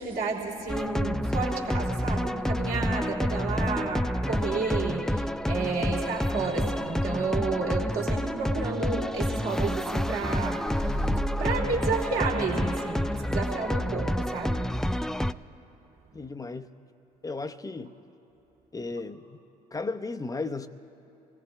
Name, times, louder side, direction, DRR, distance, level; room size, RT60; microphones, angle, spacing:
voice 1, 0.0-11.1 11.4-14.6, right 4 dB, 55° right, 2.8 m, -31 dB
sound 1, 0.7-15.3, equal, ahead, 0.4 m, -28 dB
voice 2, 16.1-16.7 17.2-17.9 18.7-19.4 19.7-20.7, left 3 dB, 20° left, 0.8 m, -34 dB
27.0 x 18.0 x 2.3 m
figure-of-eight pair, 50°, 19 cm